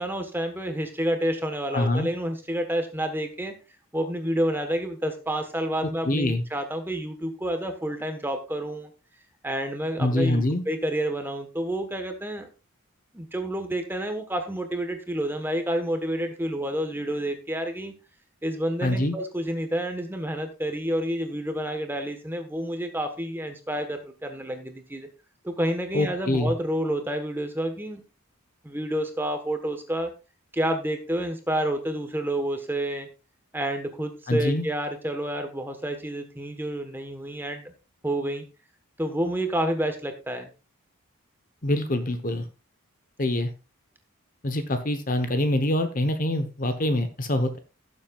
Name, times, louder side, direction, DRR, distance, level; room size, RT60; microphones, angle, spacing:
voice 1, 0.0-3.5 3.9-8.9 9.4-12.5 13.1-17.9 18.4-25.1 25.4-28.0 28.6-30.1 30.5-33.1 33.5-37.7 38.0-38.4 39.0-40.5, right 1 dB, 10° right, 6 dB, 1.2 m, -29 dB
voice 2, 1.7-2.1 6.0-6.4 10.0-10.6 18.8-19.1 25.9-26.5 34.3-34.6 41.6-42.5 43.2-43.5 44.4-47.6, left 1 dB, 35° left, 8 dB, 1.0 m, -25 dB
17.0 x 7.4 x 2.4 m, 0.30 s
head